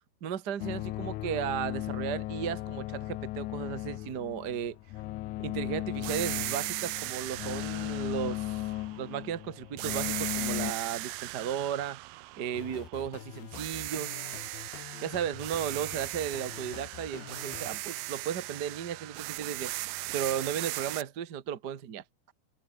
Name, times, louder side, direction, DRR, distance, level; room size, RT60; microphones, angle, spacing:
voice 1, 0.2-4.8 5.4-8.6 9.0-12.0 12.4-14.2 15.0-19.7 20.1-22.0, right 9 dB, 65° right, 1.0 m, -35 dB
sound 1, 0.6-10.7, left 16 dB, 90° left, 1.7 m, -36 dB
sound 2, 6.0-9.3 9.8-13.1 13.5-21.0, right 20 dB, 80° right, 2.0 m, -38 dB
sound 3, 12.5-17.8, left 12 dB, 75° left, 3.5 m, -46 dB
omnidirectional pair, 4.5 m